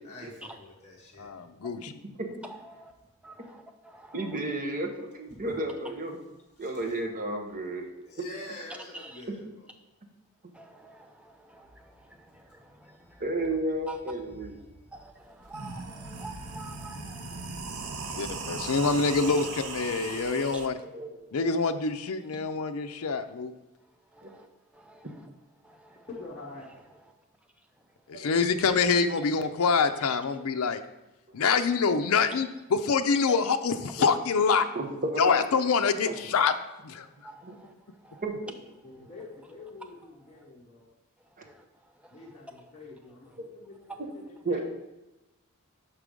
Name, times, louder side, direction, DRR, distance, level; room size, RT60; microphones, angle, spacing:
voice 1, 0.0-1.5 6.6-6.7 8.0-9.7 13.1-13.2 26.1-26.7 38.8-40.9 42.1-44.6, left 2 dB, 30° left, -5 dB, 1.0 m, -46 dB
voice 2, 1.2-1.9 18.2-20.8 21.3-23.5 28.1-30.8 31.3-34.7 35.2-36.5 36.8-37.1, left 5 dB, 70° left, 8 dB, 0.5 m, -25 dB
voice 3, 2.4-2.9 3.2-4.4 5.5-5.6 8.9-9.2 10.5-13.2 13.9-14.0 14.9-18.4 20.5-20.6 23.9-25.3 25.6-26.1 26.6-27.1 27.8-28.3 31.3-31.4 33.3-33.4 33.9-34.0 37.0-38.2 38.9-39.1 40.3-40.5 41.2-42.5, right 2 dB, 5° right, 4 dB, 0.5 m, -49 dB
voice 4, 4.1-6.2 6.6-7.9 9.3-9.4 13.2-14.6 20.1-21.1 24.2-24.4 28.1-28.3 31.3-31.4 34.0-34.1 34.7-35.4 36.1-36.2 37.4-37.5 38.2-38.4 41.4-41.5 44.0-44.1 44.4-44.6, right 2 dB, 40° right, 3 dB, 0.9 m, -33 dB
sound 1, 14.9-15.0 15.4-20.7, right 3 dB, 85° right, 0.7 m, -38 dB
5.9 x 4.8 x 5.1 m, 0.99 s
head